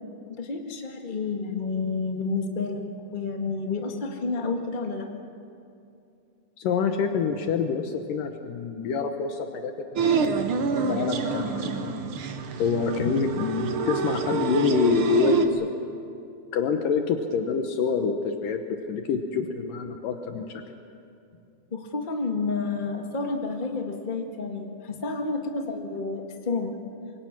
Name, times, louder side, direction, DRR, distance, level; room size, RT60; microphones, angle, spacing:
voice 1, 0.3-2.9 3.1-5.1 21.7-26.7, left 4 dB, 40° left, 3 dB, 0.6 m, -30 dB
voice 2, 6.6-11.9 12.6-15.7 16.5-20.6, left 5 dB, 75° left, 5 dB, 2.6 m, -27 dB
sound 1, 10.0-15.5, right 5 dB, 65° right, 1.3 m, -26 dB
26.5 x 23.0 x 6.1 m, 2.6 s
omnidirectional pair, 4.1 m